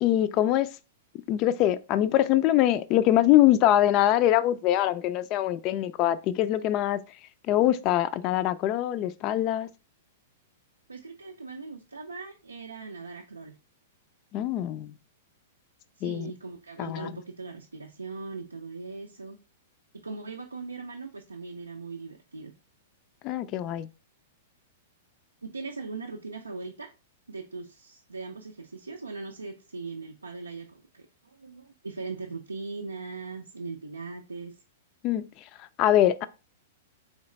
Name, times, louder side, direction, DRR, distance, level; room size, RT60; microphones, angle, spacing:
voice 1, 0.0-0.7 1.3-7.0 7.5-9.7 14.3-14.9 16.0-16.3 16.8-17.1 23.2-23.9 35.0-35.2 35.8-36.2, left 13 dB, 40° left, 0.3 m, -23 dB
voice 2, 10.9-13.6 16.0-19.4 20.0-22.5 23.5-23.6 25.4-26.9 27.3-34.5, right 4 dB, 90° right, 0.4 m, -40 dB
3.8 x 3.1 x 3.1 m
hypercardioid pair, 105°, 0 cm